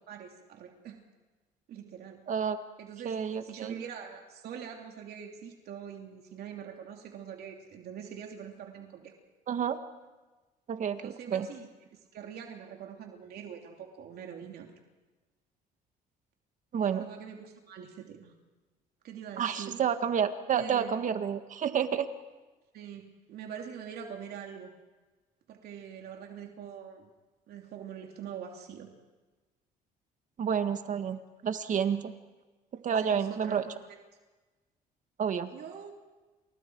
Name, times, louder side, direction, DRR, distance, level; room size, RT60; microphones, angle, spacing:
voice 1, 0.1-1.0 1.7-2.2 2.8-9.1 11.0-14.7 16.8-18.3 19.0-19.8 20.5-21.1 22.7-24.7 25.5-27.1 27.5-28.9 33.0-33.8 35.5-35.9, right 8 dB, 70° right, 2 dB, 3.0 m, -44 dB
voice 2, 2.3-2.6 3.0-3.8 9.5-9.8 10.7-11.5 16.7-17.1 19.4-22.1 30.4-32.1 32.8-33.7 35.2-35.5, right 7 dB, 50° right, 8 dB, 1.9 m, -30 dB
30.0 x 27.5 x 4.8 m, 1.2 s
cardioid pair, 110°, 17 cm